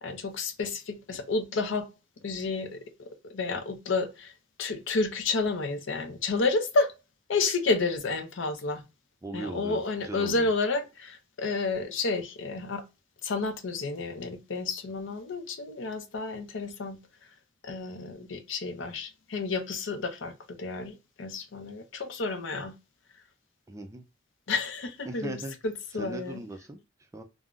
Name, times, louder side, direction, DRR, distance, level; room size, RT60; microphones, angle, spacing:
voice 1, 0.0-1.9 2.2-4.3 4.6-6.9 7.3-8.8 9.3-12.8 13.2-17.0 17.6-22.7 24.5-25.4 25.6-26.4, left 3 dB, 70° left, 0.6 m, -30 dB
voice 2, 9.2-10.5 23.7-24.0 25.1-25.6 25.9-27.2, right 2 dB, 15° right, 0.3 m, -39 dB
3.6 x 2.0 x 2.3 m
head